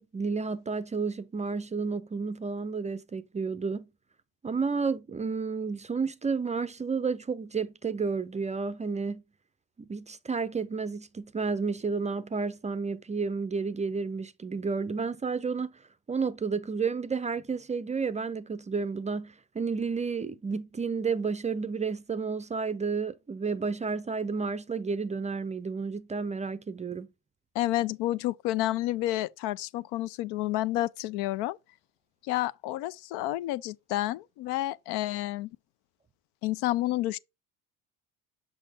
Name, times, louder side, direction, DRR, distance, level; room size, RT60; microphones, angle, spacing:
voice 1, 0.0-3.9 4.4-9.2 9.8-15.7 16.1-27.1, right 5 dB, 20° right, 0.4 m, -31 dB
voice 2, 27.5-31.6 32.2-35.5 36.4-37.2, left 15 dB, 75° left, 0.5 m, -30 dB
6.4 x 5.5 x 2.7 m
supercardioid pair, 85°, 40 cm